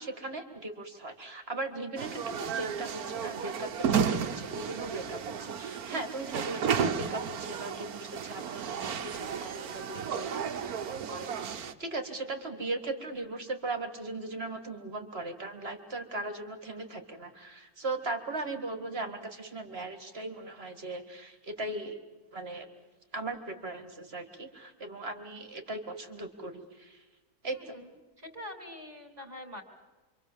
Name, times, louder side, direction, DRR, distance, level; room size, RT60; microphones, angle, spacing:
voice 1, 0.0-22.0 22.3-22.7 23.1-27.0 27.4-27.7, right 2 dB, 45° right, 7 dB, 2.2 m, -38 dB
sound 1, 2.0-11.7, right 7 dB, 85° right, 1.5 m, -33 dB
voice 2, 27.5-27.9 28.2-29.6, left 1 dB, 25° right, 5 dB, 3.3 m, -44 dB
27.0 x 25.0 x 7.3 m, 1.3 s
omnidirectional pair, 1.5 m